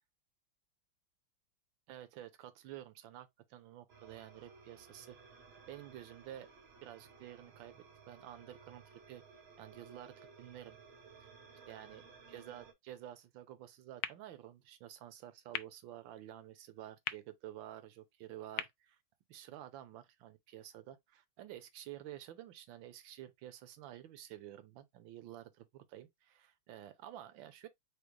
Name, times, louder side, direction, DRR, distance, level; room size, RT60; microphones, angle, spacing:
voice 1, 1.9-5.2 5.7-6.5 6.8-9.2 9.6-10.8 11.7-19.0 19.3-27.7, right 12 dB, 75° right, 1.4 m, -51 dB
sound 1, 3.9-12.7, right 5 dB, 50° right, 0.8 m, -58 dB
sound 2, 14.0-20.0, left 12 dB, 85° left, 1.4 m, -47 dB
5.1 x 2.0 x 4.6 m
omnidirectional pair, 2.2 m